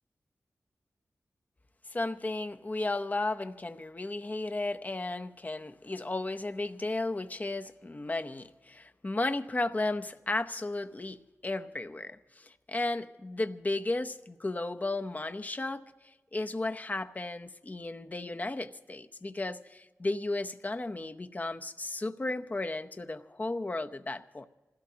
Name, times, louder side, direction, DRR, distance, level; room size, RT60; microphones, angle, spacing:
voice 1, 1.9-24.4, left 2 dB, 30° left, 0.8 m, -34 dB
27.0 x 16.5 x 2.8 m
wide cardioid pair, 80°, 5 cm